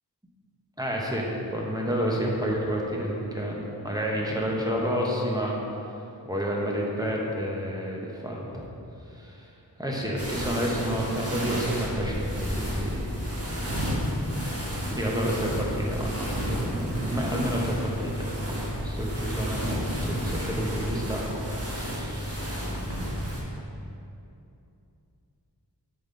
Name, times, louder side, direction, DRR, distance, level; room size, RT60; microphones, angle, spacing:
voice 1, 0.8-5.6 6.2-8.7 9.1-9.5 9.8-13.1 14.8-19.8 20.1-21.2 21.6-22.9, equal, 10° right, -3 dB, 1.1 m, -30 dB
sound 1, 10.2-23.4, equal, 35° right, 1.4 m, -31 dB
7.8 x 3.8 x 3.9 m, 2.7 s
wide cardioid pair, 50°, 42 cm